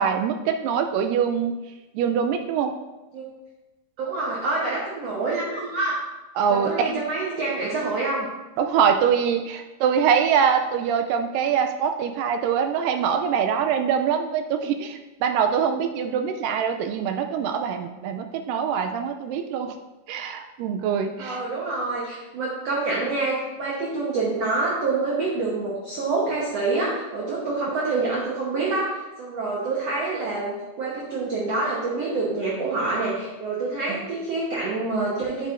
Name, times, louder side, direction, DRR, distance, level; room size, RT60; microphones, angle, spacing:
voice 1, 0.0-1.5 1.9-2.8 6.4-7.0 8.6-19.8 20.1-21.4 33.9-34.0, right 7 dB, 80° right, 6 dB, 2.0 m, -24 dB
voice 2, 4.0-6.0 6.5-8.3 21.2-35.5, right 3 dB, 65° right, -4 dB, 1.6 m, -27 dB
8.4 x 8.2 x 2.5 m, 1.1 s
omnidirectional pair, 4.2 m